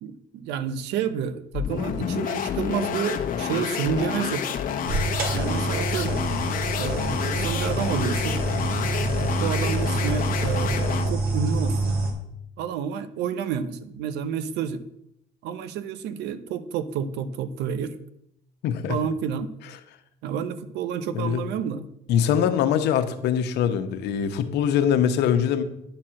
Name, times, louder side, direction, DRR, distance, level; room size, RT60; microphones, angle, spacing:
voice 1, 0.0-4.6 5.3-6.3 6.8-8.4 9.4-11.9 12.6-14.8 15.4-18.0 18.9-19.5 20.2-21.9, right 7 dB, 85° right, 13 dB, 0.8 m, -30 dB
sound 1, 1.5-11.2, left 8 dB, 55° left, 1.1 m, -29 dB
sound 2, 4.8-12.1, right 2 dB, 60° right, 2.5 m, -27 dB
voice 2, 18.6-19.0 21.1-21.4 22.1-25.6, left 8 dB, 80° left, 8 dB, 1.1 m, -23 dB
10.5 x 4.4 x 7.6 m, 0.78 s
cardioid pair, 110°, 17 cm